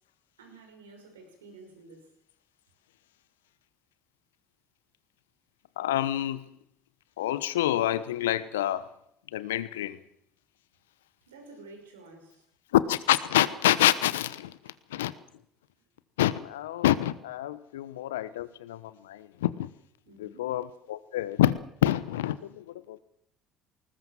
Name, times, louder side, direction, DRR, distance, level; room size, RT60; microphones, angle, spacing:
voice 1, 0.4-2.1 11.3-12.4 14.7-14.8 20.1-20.5, right 3 dB, 85° right, 4 dB, 5.8 m, -51 dB
voice 2, 5.8-6.4 7.2-8.9 9.3-10.0 12.7-15.1 16.2-19.7 20.2-21.5 21.8-23.0, left 13 dB, 80° left, 17 dB, 1.1 m, -27 dB
20.5 x 19.5 x 7.4 m, 0.72 s
hypercardioid pair, 60°, 0 cm